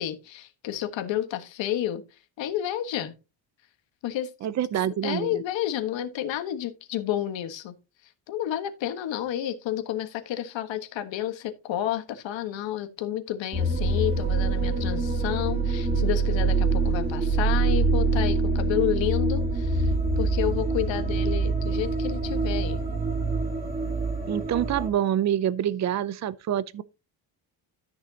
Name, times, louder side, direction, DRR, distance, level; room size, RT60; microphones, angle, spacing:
voice 1, 0.0-2.0 2.4-3.1 4.0-4.3 5.0-7.7 8.3-22.8, left 11 dB, 85° left, 1.5 m, -30 dB
voice 2, 4.4-5.4 24.3-26.8, right 10 dB, 40° right, 0.6 m, -26 dB
sound 1, 13.5-24.9, right 3 dB, 20° right, 2.7 m, -25 dB
13.0 x 6.6 x 2.9 m
cardioid pair, 150°, 44 cm